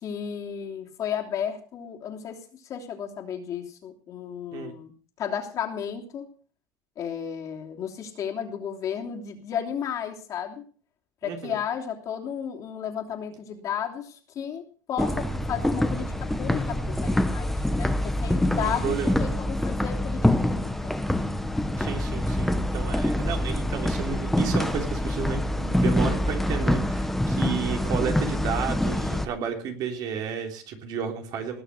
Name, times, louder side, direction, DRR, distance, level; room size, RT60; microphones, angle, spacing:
voice 1, 0.0-2.4 2.7-4.9 5.2-6.3 7.0-10.6 11.2-14.6 14.9-21.0, left 8 dB, 45° left, 2 dB, 3.0 m, -33 dB
voice 2, 11.2-11.6 18.6-19.2 21.8-31.6, right 7 dB, 55° right, 3 dB, 3.5 m, -32 dB
sound 1, 15.0-29.3, left 1 dB, 5° left, 1.1 m, -25 dB
19.5 x 6.5 x 6.7 m, 0.42 s
cardioid pair, 130°, 8 cm